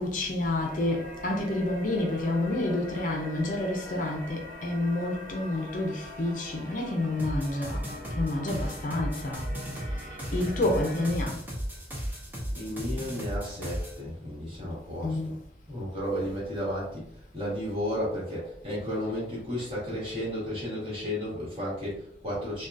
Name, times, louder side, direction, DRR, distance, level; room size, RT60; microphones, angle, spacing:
voice 1, 0.0-7.8 8.2-9.4 10.3-11.4 15.0-15.4 16.2-16.3, left 2 dB, 45° left, 0.5 m, -29 dB
sound 1, 0.6-11.2, left 1 dB, 45° right, 1.0 m, -43 dB
sound 2, 7.2-14.0, equal, 10° right, 0.5 m, -35 dB
voice 2, 12.5-15.2 15.7-17.0 17.3-22.7, equal, 30° right, 1.3 m, -33 dB
3.5 x 2.2 x 2.5 m
head